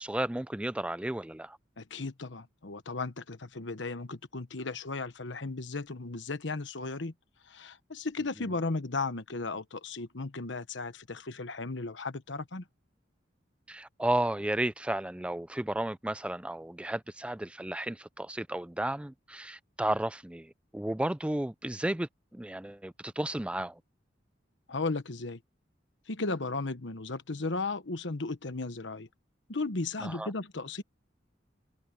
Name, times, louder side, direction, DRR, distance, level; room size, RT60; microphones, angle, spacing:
voice 1, 0.0-1.6 13.7-23.8 30.0-30.3, right 1 dB, 5° right, 0.4 m, -33 dB
voice 2, 1.8-7.1 7.5-12.6 24.7-25.4 26.1-29.1 29.5-30.8, left 3 dB, 75° left, 1.2 m, -35 dB
head